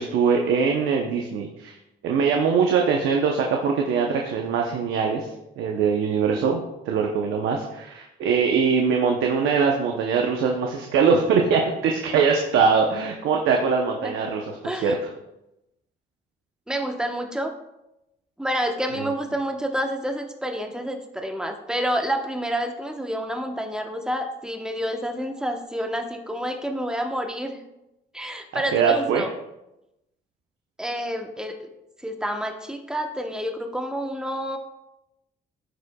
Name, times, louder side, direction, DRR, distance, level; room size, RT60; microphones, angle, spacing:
voice 1, 0.0-1.8 2.0-6.6 6.9-15.0 19.0-19.1 28.5-29.2, right 5 dB, 90° right, 2 dB, 0.8 m, -22 dB
voice 2, 14.6-15.0 16.7-17.5 18.4-27.6 28.1-29.3 30.8-31.7 32.0-34.6, equal, 5° right, 4 dB, 1.0 m, -28 dB
14.5 x 4.9 x 2.3 m, 0.91 s
cardioid pair, 90°, 20 cm